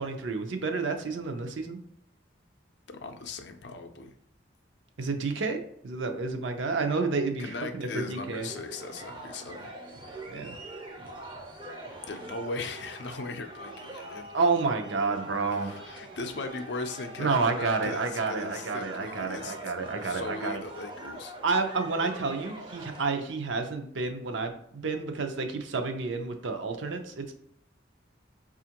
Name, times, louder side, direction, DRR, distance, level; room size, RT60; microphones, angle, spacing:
voice 1, 0.0-1.8 5.0-8.5 10.3-10.5 14.3-16.0 17.2-20.6 21.4-27.3, right 4 dB, 80° right, 5 dB, 0.5 m, -30 dB
voice 2, 2.9-4.1 7.4-9.7 12.1-14.3 15.6-21.3, left 3 dB, 65° left, 7 dB, 0.4 m, -38 dB
sound 1, 7.8-23.0, right 1 dB, 25° right, 0.4 m, -43 dB
5.0 x 2.4 x 2.8 m, 0.71 s
head